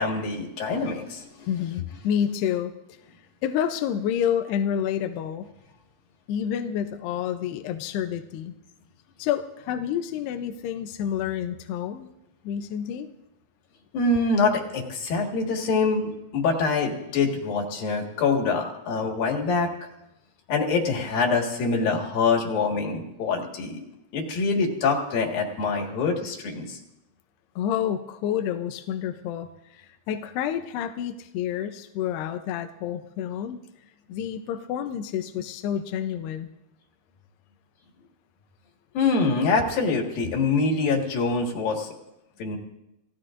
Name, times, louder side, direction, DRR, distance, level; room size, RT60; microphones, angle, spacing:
voice 1, 0.0-1.5 13.9-19.7 20.5-23.8 24.1-26.8 38.9-41.9 42.4-42.6, left 4 dB, 65° left, 0 dB, 3.4 m, -25 dB
voice 2, 1.5-3.0 3.4-5.5 6.3-8.6 9.2-12.1 12.4-13.1 27.6-33.6 34.1-36.5, left 9 dB, 85° left, 7 dB, 2.8 m, -29 dB
28.5 x 16.0 x 2.6 m, 0.90 s
omnidirectional pair, 4.7 m